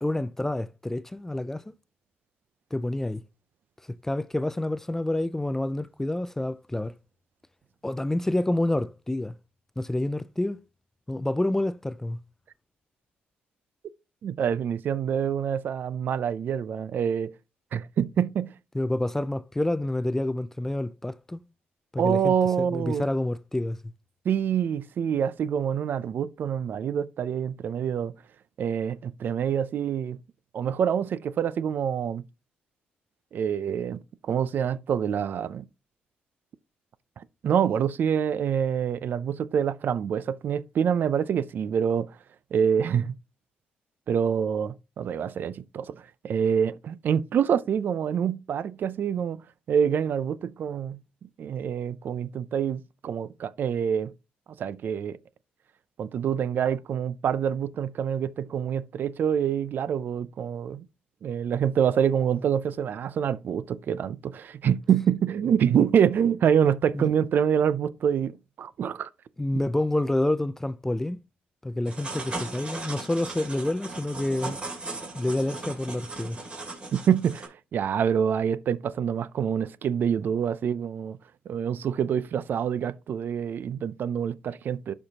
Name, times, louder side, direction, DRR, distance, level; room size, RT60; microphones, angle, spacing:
voice 1, 0.0-1.6 2.7-3.2 3.9-6.9 7.8-9.4 9.8-10.6 11.1-12.2 18.7-21.4 21.9-23.8 66.9-67.1 69.4-71.2 71.6-74.6 75.1-76.4, left 1 dB, 10° left, 0.4 m, -28 dB
voice 2, 14.2-17.3 17.7-18.5 22.0-23.1 24.3-28.1 28.6-30.2 30.5-32.2 33.3-35.7 37.2-42.1 42.5-43.1 44.1-49.4 49.7-51.0 51.4-54.1 54.6-55.2 56.0-60.8 61.2-69.1 69.5-69.6 76.9-81.2 81.5-84.9, right 8 dB, 55° right, 0.5 m, -26 dB
sound 1, 71.9-77.5, right 3 dB, 30° right, 2.4 m, -37 dB
11.5 x 4.5 x 2.8 m
cardioid pair, 90°, 4 cm